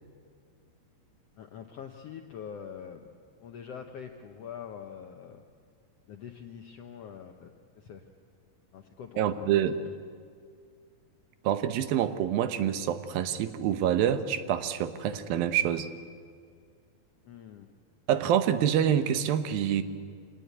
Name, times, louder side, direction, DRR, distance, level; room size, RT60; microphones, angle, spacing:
voice 1, 1.4-3.1 3.4-5.4 6.1-8.0 8.7-9.6 17.2-17.7, left 7 dB, 75° left, 5 dB, 1.4 m, -44 dB
voice 2, 9.2-9.8 11.4-15.9 18.1-19.8, right 10 dB, 85° right, 11 dB, 2.8 m, -26 dB
25.5 x 18.5 x 8.4 m, 2.1 s
omnidirectional pair, 4.1 m